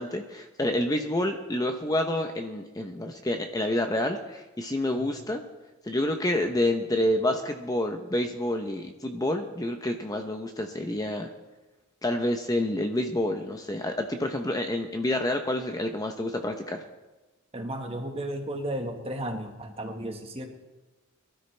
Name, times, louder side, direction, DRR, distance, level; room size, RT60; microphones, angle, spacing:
voice 1, 0.0-5.4 5.8-11.3 12.0-16.8, left 1 dB, 15° left, 5 dB, 0.7 m, -28 dB
voice 2, 17.5-20.5, right 1 dB, 25° right, 4 dB, 1.4 m, -34 dB
23.0 x 13.0 x 3.3 m, 1.1 s
head